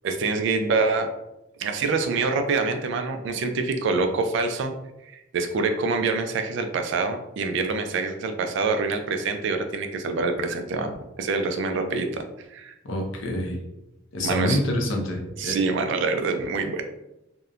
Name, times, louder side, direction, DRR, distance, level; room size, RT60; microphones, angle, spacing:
voice 1, 0.0-1.1 1.6-4.7 5.1-12.2 12.5-12.7 14.2-14.6 15.4-16.8, right 4 dB, 65° right, 6 dB, 0.3 m, -26 dB
voice 2, 12.8-13.6 14.1-15.6, left 1 dB, 70° left, 1 dB, 0.6 m, -26 dB
2.7 x 2.1 x 2.4 m, 0.89 s
head